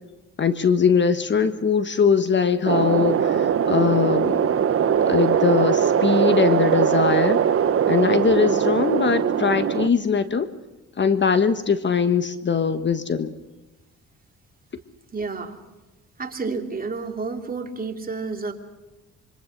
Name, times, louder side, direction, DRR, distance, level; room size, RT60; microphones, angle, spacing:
voice 1, 0.4-4.5 5.1-7.4 7.8-10.5 11.0-13.3, left 6 dB, 35° left, 10 dB, 1.4 m, -21 dB
sound 1, 2.7-9.9, right 8 dB, 45° right, 1.1 m, -21 dB
voice 2, 15.1-15.6 16.2-18.5, right 4 dB, 30° right, 4 dB, 3.0 m, -30 dB
26.5 x 24.5 x 6.6 m, 1.1 s
cardioid pair, 90°, 30 cm